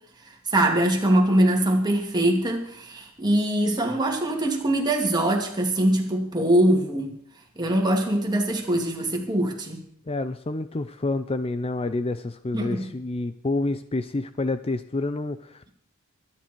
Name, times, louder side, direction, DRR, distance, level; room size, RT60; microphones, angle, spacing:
voice 1, 0.5-7.1 7.6-9.8 12.5-12.9, right 1 dB, 20° right, 1 dB, 2.8 m, -22 dB
voice 2, 10.1-15.7, left 2 dB, 25° left, 12 dB, 0.5 m, -28 dB
23.5 x 10.0 x 4.6 m, 0.66 s
head